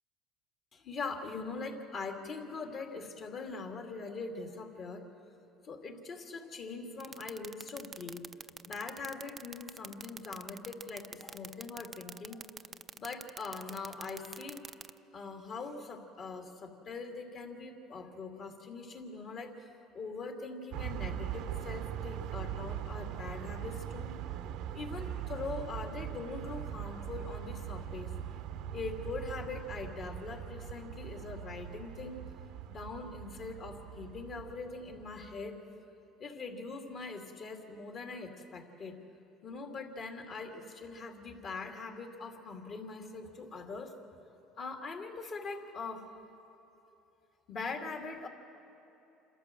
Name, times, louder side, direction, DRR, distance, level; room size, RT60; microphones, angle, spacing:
voice 1, 0.7-5.0 5.6-8.3 8.7-12.4 13.0-14.6 15.1-19.7 19.9-24.1 24.7-28.1 28.7-32.2 32.7-35.6 36.2-39.0 39.4-43.9 44.6-46.1 47.5-48.3, left 4 dB, 50° left, 3 dB, 2.5 m, -42 dB
sound 1, 7.0-14.9, right 5 dB, 30° right, 0.5 m, -44 dB
sound 2, 20.7-35.6, right 10 dB, 70° right, 0.8 m, -41 dB
27.0 x 13.5 x 7.6 m, 2.9 s
supercardioid pair, 100°, 0 cm